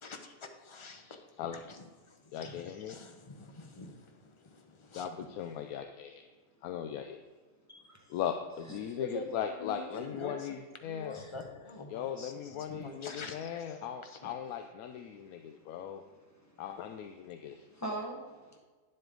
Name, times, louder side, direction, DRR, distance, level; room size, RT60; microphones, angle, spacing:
voice 1, 0.0-5.1 9.0-10.6 10.8-14.3, left 3 dB, 30° left, 5 dB, 0.6 m, -46 dB
voice 2, 2.3-3.0 4.9-6.2 6.6-7.2 8.1-11.2 11.9-16.0 16.6-17.6, left 9 dB, 85° left, 7 dB, 1.0 m, -38 dB
voice 3, 7.7-8.1 8.8-9.0 11.1-11.3 12.5-12.6 15.1-15.2 17.3-18.6, right 1 dB, 10° left, -1 dB, 1.4 m, -42 dB
9.6 x 7.7 x 3.8 m, 1.4 s
omnidirectional pair, 1.5 m